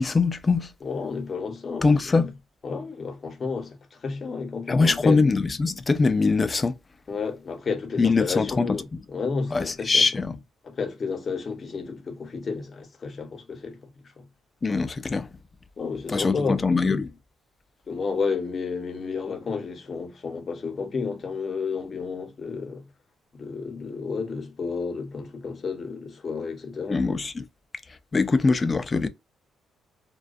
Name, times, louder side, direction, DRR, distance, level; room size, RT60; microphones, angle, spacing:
voice 1, 0.0-0.7 1.8-2.3 4.7-6.8 8.0-8.8 9.5-10.4 14.6-15.3 16.1-17.1 26.9-27.4 28.1-29.1, left 4 dB, 30° left, 0.3 m, -22 dB
voice 2, 0.8-2.3 2.6-5.2 7.1-10.2 10.6-13.8 14.2-14.3 15.8-16.6 17.9-22.8 23.3-27.2, left 5 dB, 45° left, 0.8 m, -31 dB
2.4 x 2.2 x 2.4 m
cardioid pair, 90°, 0 cm